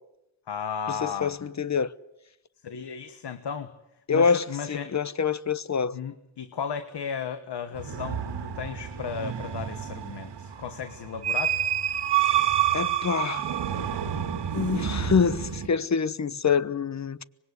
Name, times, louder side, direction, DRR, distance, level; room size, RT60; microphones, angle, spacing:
voice 1, 0.5-1.4 2.6-3.7 4.1-4.9 5.9-11.6, left 7 dB, 70° left, 1.5 m, -35 dB
voice 2, 1.0-1.9 4.1-6.0 12.7-13.4 14.5-17.2, left 6 dB, 40° left, 1.0 m, -26 dB
sound 1, 7.8-15.7, right 10 dB, 75° right, 2.0 m, -28 dB
25.0 x 20.5 x 8.3 m
cardioid pair, 75°, 43 cm